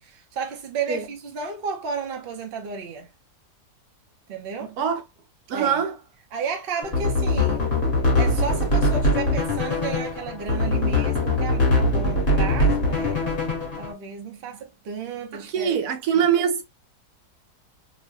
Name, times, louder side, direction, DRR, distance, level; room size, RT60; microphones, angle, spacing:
voice 1, 0.0-3.1 4.3-4.7 5.5-5.8 6.3-7.7 8.1-13.2 13.8-15.9 16.1-16.3, right 5 dB, 50° right, 0.7 m, -33 dB
voice 2, 5.5-5.9 15.5-16.6, right 8 dB, 80° right, 1.1 m, -22 dB
sound 1, 6.8-13.9, left 1 dB, 40° left, 1.1 m, -22 dB
3.0 x 2.0 x 2.7 m
omnidirectional pair, 1.7 m